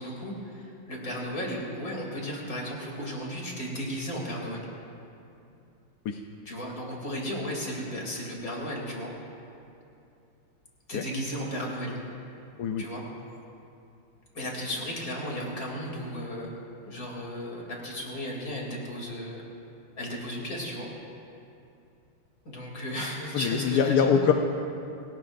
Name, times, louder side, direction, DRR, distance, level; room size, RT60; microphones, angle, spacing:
voice 1, 0.0-4.6 6.4-9.1 10.9-12.0 12.8-13.0 14.3-16.6 16.9-19.4 20.0-20.9 22.4-24.1, equal, 40° left, -2 dB, 3.3 m, -34 dB
voice 2, 23.3-24.3, left 7 dB, 65° left, 4 dB, 1.1 m, -24 dB
30.0 x 17.0 x 2.6 m, 2.6 s
omnidirectional pair, 2.4 m